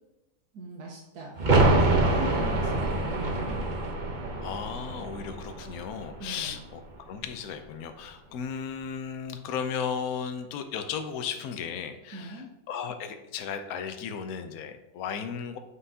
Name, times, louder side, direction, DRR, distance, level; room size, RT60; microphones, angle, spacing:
voice 1, 0.5-3.9 6.2-6.6 12.1-12.5, right 1 dB, 80° right, -2 dB, 1.5 m, -40 dB
sound 1, 1.4-6.9 7.2-7.3, right 2 dB, 40° right, 0.8 m, -26 dB
voice 2, 4.4-6.8 7.1-15.6, left 7 dB, 70° left, 7 dB, 1.1 m, -35 dB
7.9 x 5.6 x 2.7 m, 0.99 s
omnidirectional pair, 1.7 m